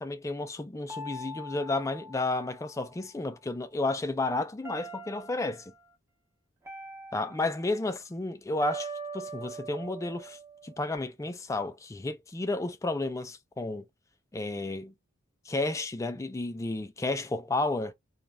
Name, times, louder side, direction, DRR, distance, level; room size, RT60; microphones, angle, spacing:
voice 1, 0.0-5.6 7.1-10.4 10.6-13.9 14.3-14.9 15.5-17.9, left 2 dB, 15° left, 0.3 m, -32 dB
sound 1, 0.9-3.2 4.6-5.7 6.7-7.9 8.6-11.0, right 2 dB, 15° right, 0.7 m, -42 dB
2.3 x 2.0 x 3.3 m
head